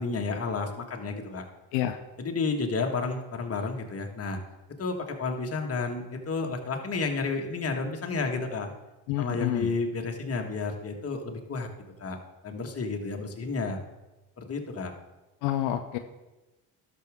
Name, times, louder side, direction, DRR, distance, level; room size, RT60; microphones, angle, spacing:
voice 1, 0.0-1.4 2.2-4.4 4.8-8.7 9.2-11.7 12.0-12.2 12.4-13.8 14.4-14.9, left 4 dB, 35° left, 3 dB, 1.6 m, -31 dB
voice 2, 9.1-9.7 15.4-16.0, left 12 dB, 85° left, 7 dB, 0.7 m, -28 dB
11.5 x 6.4 x 3.6 m, 1.1 s
supercardioid pair, 75°, 43 cm